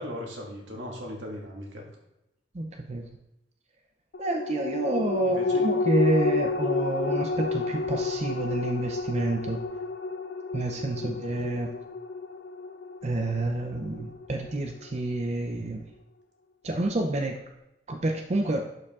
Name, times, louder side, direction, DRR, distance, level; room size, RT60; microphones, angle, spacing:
voice 1, 0.0-1.8 5.2-5.7 10.7-11.1, equal, 80° right, 0 dB, 1.9 m, -38 dB
voice 2, 2.5-3.1 4.2-9.6 10.5-11.7 13.0-15.8 16.6-17.3 17.9-18.6, right 2 dB, 35° right, 3 dB, 0.5 m, -28 dB
sound 1, 4.1-14.9 15.3-15.4, left 4 dB, 65° left, 0.5 m, -30 dB
11.0 x 5.0 x 3.6 m, 0.91 s
head